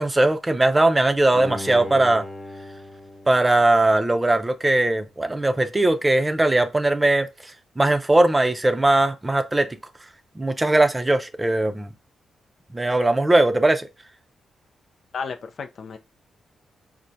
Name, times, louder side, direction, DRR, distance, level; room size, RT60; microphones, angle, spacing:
voice 1, 0.0-2.2 3.3-7.3 7.8-9.7 10.4-11.9 12.7-13.9, right 2 dB, 20° right, 0.5 m, -19 dB
Bowed string instrument, 1.3-4.4 4.9-5.0, left 2 dB, 30° left, 0.7 m, -38 dB
voice 2, 15.1-16.0, left 5 dB, 60° left, 0.4 m, -33 dB
4.3 x 2.1 x 2.6 m
supercardioid pair, 45°, 0 cm